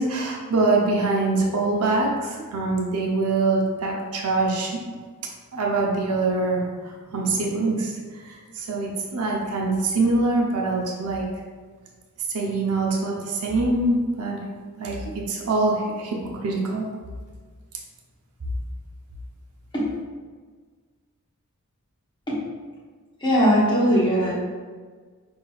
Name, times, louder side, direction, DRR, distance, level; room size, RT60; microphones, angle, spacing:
voice 1, 0.0-4.8 5.5-11.2 12.3-14.4 14.8-15.0 15.3-16.2 16.4-16.9, right 3 dB, 90° right, -1 dB, 0.7 m, -24 dB
voice 2, 23.2-24.4, equal, 20° left, -6 dB, 1.0 m, -20 dB
5.6 x 2.8 x 2.3 m, 1.5 s
head